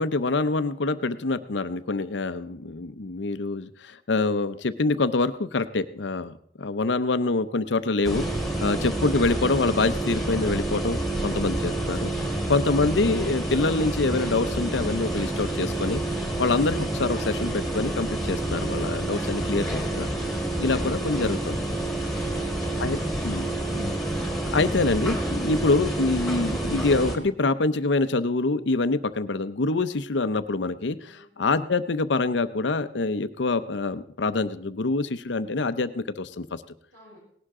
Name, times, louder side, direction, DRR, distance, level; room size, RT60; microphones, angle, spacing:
voice 1, 0.0-8.3 8.6-11.0 11.2-12.1 12.5-16.0 16.4-20.1 20.6-21.8 22.8-23.0 23.2-23.5 23.7-23.9 24.5-31.0 31.4-36.6, left 3 dB, 70° left, 12 dB, 0.7 m, -25 dB
sound 1, 8.0-27.2, right 1 dB, ahead, 2.0 m, -28 dB
voice 2, 22.1-24.0 31.0-31.2 36.9-37.2, equal, 70° right, -10 dB, 7.5 m, -52 dB
18.5 x 11.5 x 3.7 m, 0.65 s
head